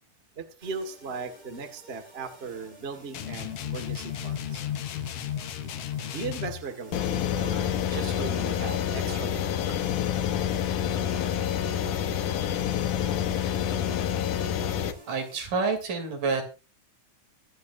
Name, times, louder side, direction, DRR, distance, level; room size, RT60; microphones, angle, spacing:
voice 1, 0.3-4.6 6.1-9.6, right 4 dB, 30° right, 1.2 m, -38 dB
sound 1, 0.6-15.4, right 1 dB, 65° right, 8.1 m, -52 dB
sound 2, 3.1-6.6, left 10 dB, 65° left, 1.6 m, -34 dB
sound 3, 6.9-14.9, left 9 dB, 80° left, 2.6 m, -28 dB
voice 2, 15.1-16.4, right 4 dB, 85° right, 4.4 m, -28 dB
23.0 x 8.6 x 2.6 m
omnidirectional pair, 3.6 m